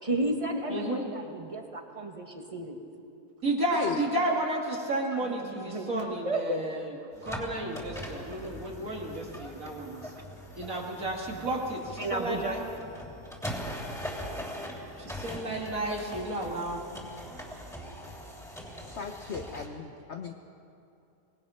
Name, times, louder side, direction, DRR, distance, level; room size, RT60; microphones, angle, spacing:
voice 1, 0.0-2.8 5.1-6.7 9.9-10.2 12.0-12.6, right 1 dB, 20° right, 3 dB, 1.7 m, -33 dB
voice 2, 0.7-1.0 3.4-6.9 7.2-10.1 10.6-12.6 15.0-16.8, right 1 dB, 60° right, -2 dB, 2.6 m, -32 dB
voice 3, 3.7-4.0 18.9-20.3, left 6 dB, 50° left, 4 dB, 1.1 m, -36 dB
sound 1, 7.1-19.7, equal, ahead, 2.9 m, -41 dB
25.0 x 19.5 x 5.7 m, 2.7 s
omnidirectional pair, 1.7 m